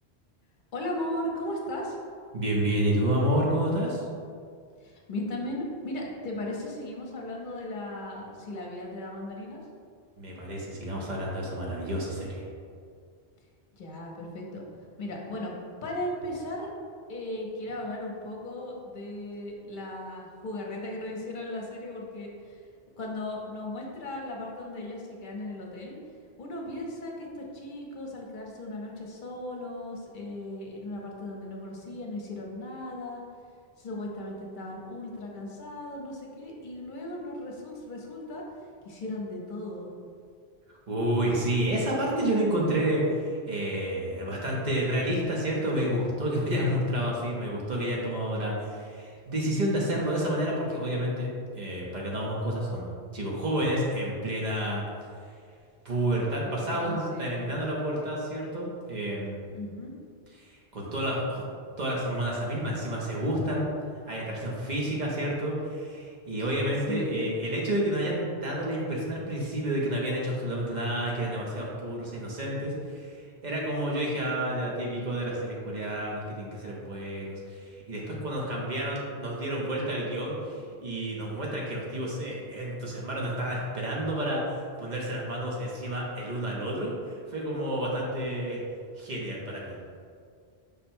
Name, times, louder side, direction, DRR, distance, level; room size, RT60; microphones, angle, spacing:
voice 1, 0.7-2.0 4.8-9.6 13.7-14.6 15.0-15.5 15.8-16.7 17.1-22.6 23.0-26.0 26.4-33.2 33.8-38.4 38.8-39.9 56.5-57.5 59.5-59.9 66.9-67.3, left 1 dB, 55° left, -1 dB, 0.8 m, -37 dB
voice 2, 2.3-4.1 10.2-12.5 40.9-54.8 55.8-59.4 60.4-61.4 61.8-63.7 64.1-88.6 89.0-89.8, right 1 dB, 45° right, -3 dB, 0.8 m, -30 dB
5.2 x 2.2 x 4.4 m, 2.2 s
omnidirectional pair, 1.1 m